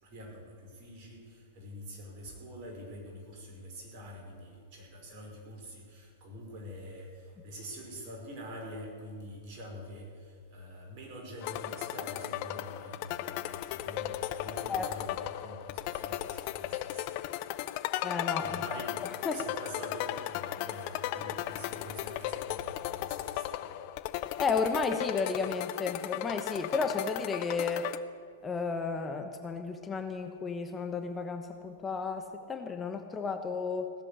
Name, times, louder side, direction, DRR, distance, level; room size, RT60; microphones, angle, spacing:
voice 1, 0.0-17.1 18.4-19.0 19.3-23.7, equal, 45° right, 0 dB, 5.1 m, -45 dB
sound 1, 11.4-28.0, left 14 dB, 50° left, 0.7 m, -36 dB
voice 2, 14.7-15.2 18.0-18.6 19.2-19.4 24.4-27.9 28.4-33.9, left 4 dB, 20° left, 6 dB, 1.1 m, -33 dB
17.5 x 7.6 x 10.0 m, 2.4 s
hypercardioid pair, 105°, 0 cm